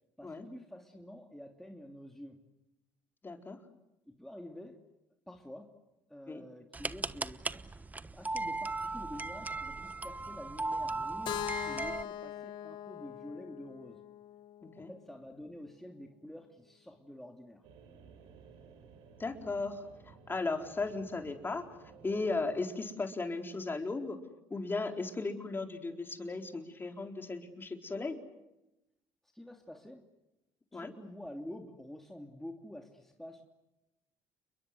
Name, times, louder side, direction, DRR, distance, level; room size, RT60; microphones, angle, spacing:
voice 1, 0.2-2.4 4.0-4.9 5.3-5.7 6.1-7.5 8.1-14.0 14.8-17.6 29.3-30.1 30.7-33.4, left 1 dB, 5° left, 2 dB, 3.0 m, -48 dB
voice 2, 3.2-3.6 6.3-6.4 14.6-14.9 19.2-21.6 22.0-24.2 24.5-28.2 30.7-30.9, left 3 dB, 25° left, 4 dB, 4.3 m, -36 dB
sound 1, 6.7-12.0, right 3 dB, 20° right, 1.1 m, -37 dB
Keyboard (musical), 11.3-15.2, left 12 dB, 65° left, 1.1 m, -41 dB
sound 2, 17.6-22.6, right 6 dB, 85° right, 4.9 m, -56 dB
30.0 x 22.5 x 8.0 m, 0.93 s
supercardioid pair, 75°, 9 cm